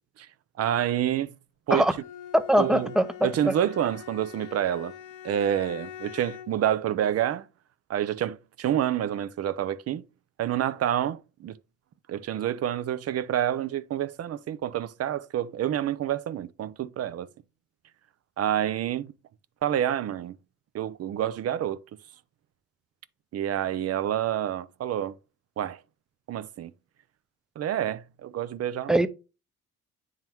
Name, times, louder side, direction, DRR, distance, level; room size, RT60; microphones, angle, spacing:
voice 1, 0.6-1.3 1.7-1.8 2.6-2.9 3.2-4.9 5.2-7.5 7.9-10.0 10.4-11.6 12.1-17.3 18.4-19.1 19.6-20.4 20.7-21.8 23.3-25.1 25.6-25.8 26.3-26.7 27.6-29.1, right 10 dB, 55° right, 0.5 m, -28 dB
Bowed string instrument, 1.8-6.7, left 10 dB, 85° left, 0.7 m, -43 dB
voice 2, 2.3-3.5 28.9-29.1, right 1 dB, ahead, 0.5 m, -22 dB
9.0 x 3.7 x 2.9 m
cardioid pair, 90°, 30 cm